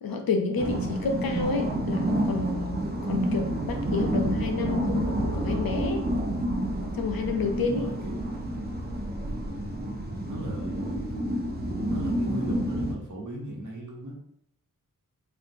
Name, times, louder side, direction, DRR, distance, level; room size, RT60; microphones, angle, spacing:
voice 1, 0.0-2.8 3.1-6.0 7.0-7.9, left 4 dB, 80° left, 4 dB, 0.6 m, -29 dB
sound 1, 0.6-12.9, right 1 dB, 30° right, 0.7 m, -29 dB
voice 2, 7.3-8.5 10.3-11.0 11.8-14.2, right 1 dB, 60° right, -2 dB, 1.2 m, -38 dB
4.4 x 2.4 x 2.6 m, 0.70 s
cardioid pair, 45°, 35 cm